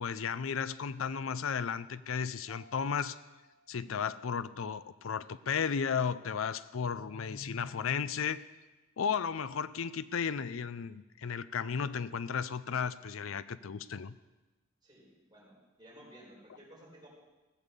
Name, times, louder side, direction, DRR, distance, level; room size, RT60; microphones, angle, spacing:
voice 1, 0.0-3.2 3.7-8.4 9.0-14.1, left 6 dB, 75° left, 15 dB, 0.5 m, -34 dB
Mallet percussion, 2.5-5.0, left 4 dB, 5° left, 2.1 m, -63 dB
voice 2, 14.8-17.1, right 1 dB, 20° right, -5 dB, 4.9 m, -55 dB
16.0 x 7.3 x 6.8 m, 1.1 s
head